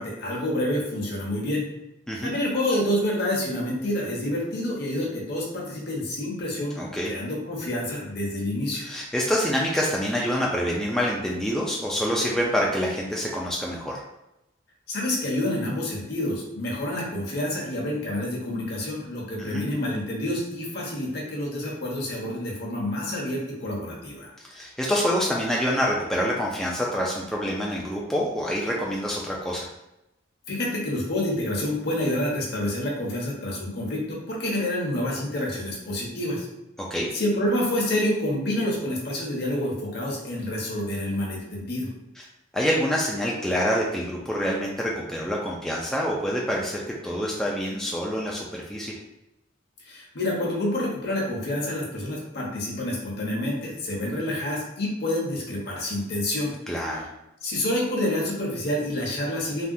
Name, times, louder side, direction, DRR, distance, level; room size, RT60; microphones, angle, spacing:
voice 1, 0.0-1.6 2.2-6.8 7.0-8.8 14.9-24.3 30.5-36.5 37.1-41.9 49.8-56.5 56.9-57.0 57.4-59.6, left 1 dB, 55° left, -2 dB, 0.9 m, -28 dB
voice 2, 6.8-7.1 8.8-14.0 19.4-19.6 24.5-29.7 36.9-37.1 42.5-48.9 56.7-57.1, equal, 5° left, -4 dB, 0.3 m, -26 dB
3.4 x 2.3 x 2.6 m, 0.89 s
head